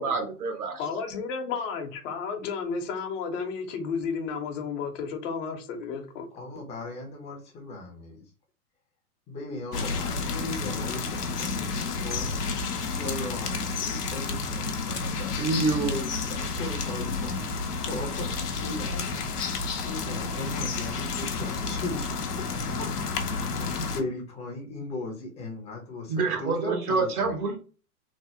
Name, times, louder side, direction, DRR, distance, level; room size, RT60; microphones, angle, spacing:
voice 1, 0.0-0.7 15.4-16.2 26.1-27.6, right 4 dB, 70° right, 1.1 m, -27 dB
voice 2, 0.8-6.3, left 5 dB, 55° left, 0.8 m, -32 dB
voice 3, 6.3-8.3 9.3-11.6 12.0-12.4 12.9-15.5 16.2-17.5 17.8-23.2 23.5-27.5, left 2 dB, 15° left, 0.5 m, -38 dB
sound 1, 9.7-24.0, left 4 dB, 90° left, 0.7 m, -31 dB
3.2 x 2.0 x 2.7 m
hypercardioid pair, 120°, 45 cm